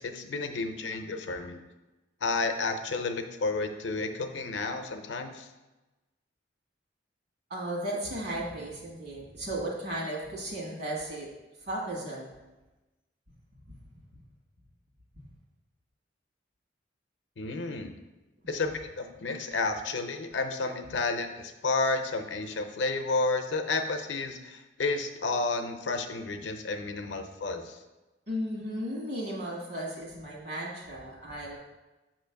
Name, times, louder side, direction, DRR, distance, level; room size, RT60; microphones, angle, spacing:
voice 1, 0.0-1.6 2.2-5.5 17.4-17.9 18.5-27.8, left 3 dB, 75° left, 7 dB, 0.6 m, -31 dB
voice 2, 7.5-11.3 11.7-12.3 13.7-13.8 14.1-14.2 28.3-31.6, right 1 dB, 65° right, -3 dB, 1.5 m, -35 dB
6.7 x 3.0 x 5.7 m, 1.1 s
head